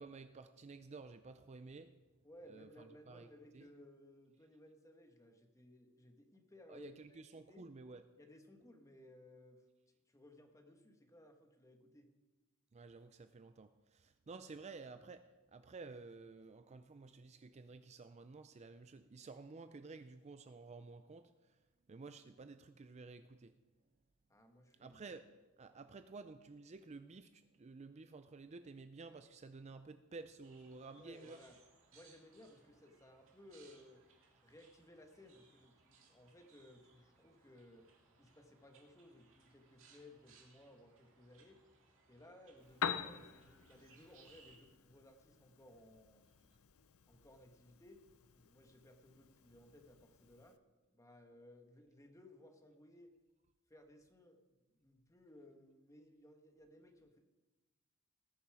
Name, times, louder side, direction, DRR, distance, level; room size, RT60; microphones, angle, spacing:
voice 1, 0.0-1.9 2.4-3.3 3.5-3.7 6.7-8.0 12.7-21.6 21.9-23.6 24.8-31.4, right 3 dB, 30° right, 10 dB, 0.4 m, -53 dB
voice 2, 2.2-7.2 7.5-7.7 8.2-12.1 24.3-25.0 31.0-31.5 31.9-34.0 34.4-37.9 38.2-41.6 42.1-46.3 47.1-48.0 48.3-50.6 50.9-53.1 53.7-57.2, left 1 dB, 15° left, 4 dB, 1.3 m, -60 dB
sound 1, 30.4-44.6, right 4 dB, 65° right, 2.2 m, -68 dB
Piano, 42.6-50.6, left 7 dB, 85° left, 0.6 m, -47 dB
18.5 x 7.0 x 4.9 m, 1.1 s
head